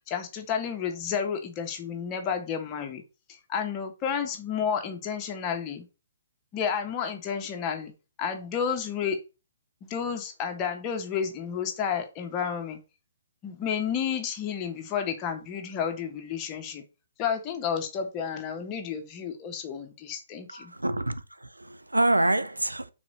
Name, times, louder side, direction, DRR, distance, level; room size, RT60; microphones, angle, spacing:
voice 1, 0.1-3.0 3.5-5.8 6.5-7.9 8.2-9.2 9.8-12.8 13.4-16.8 17.2-20.7, left 7 dB, 25° left, 1.5 m, -31 dB
voice 2, 20.5-22.9, right 2 dB, 85° right, 0.7 m, -27 dB
5.9 x 4.4 x 6.4 m
figure-of-eight pair, 130°, 0 cm